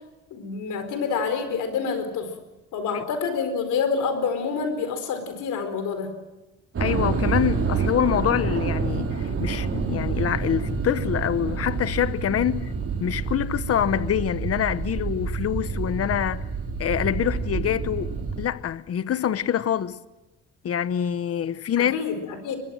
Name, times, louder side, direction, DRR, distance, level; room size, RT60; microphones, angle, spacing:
voice 1, 0.3-2.3 2.7-6.1 21.8-22.6, left 5 dB, 85° left, 4.5 m, -27 dB
sound 1, 6.7-18.4, right 5 dB, 50° right, 4.7 m, -28 dB
voice 2, 6.8-12.7 13.0-16.4 16.8-20.0 20.6-21.9, left 10 dB, 50° left, 1.0 m, -25 dB
23.0 x 22.5 x 7.7 m
cardioid pair, 90°, 30 cm